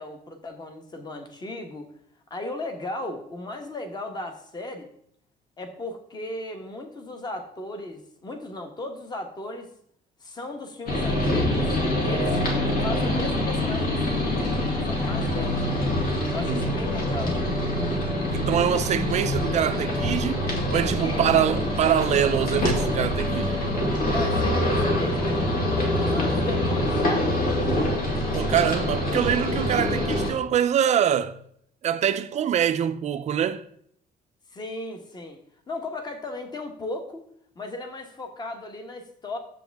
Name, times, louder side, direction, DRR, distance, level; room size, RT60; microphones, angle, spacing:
voice 1, 0.0-1.9 2.3-4.9 5.6-9.7 10.2-12.4 12.8-14.6 14.9-15.8 16.3-17.3 21.0-21.6 24.1-27.3 34.5-35.4 35.7-37.2 37.5-39.4, left 2 dB, 25° left, 1.2 m, -36 dB
sound 1, 10.9-30.3, left 1 dB, 60° left, 2.5 m, -25 dB
voice 2, 16.1-16.7 18.3-20.4 20.7-23.6 28.3-31.4 31.8-33.7, right 9 dB, 40° right, 0.5 m, -24 dB
sound 2, 16.6-20.4 20.7-24.7, right 3 dB, 15° right, 0.8 m, -39 dB
9.8 x 7.4 x 3.5 m
cardioid pair, 155°, 17 cm